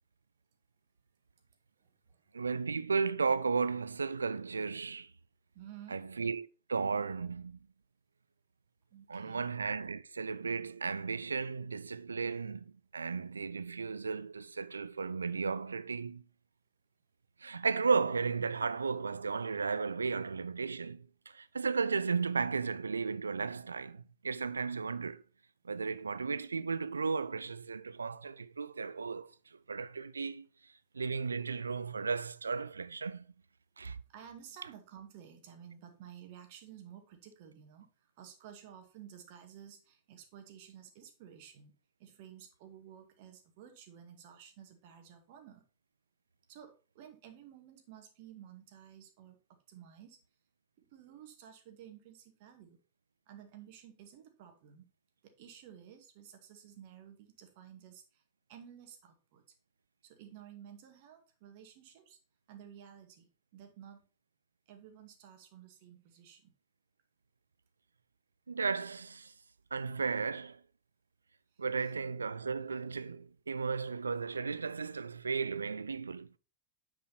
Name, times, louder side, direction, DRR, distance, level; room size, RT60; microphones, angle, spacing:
voice 1, 1.8-2.5 5.5-6.3 8.9-9.5 34.1-41.7 42.0-45.6 46.5-50.2 50.8-52.8 53.3-54.9 55.2-58.2 58.5-59.4 60.0-62.2 62.5-64.0 64.7-66.5 71.5-71.6, right 9 dB, 50° right, 2.0 m, -53 dB
voice 2, 2.3-5.1 5.9-7.6 9.1-16.2 17.4-21.1 21.3-25.2 25.6-29.3 29.7-30.5 30.9-33.3 33.8-34.0 68.5-69.3 69.7-70.6 71.6-76.4, right 5 dB, 75° right, 0.4 m, -34 dB
9.4 x 5.0 x 4.3 m
figure-of-eight pair, 90°, 0 cm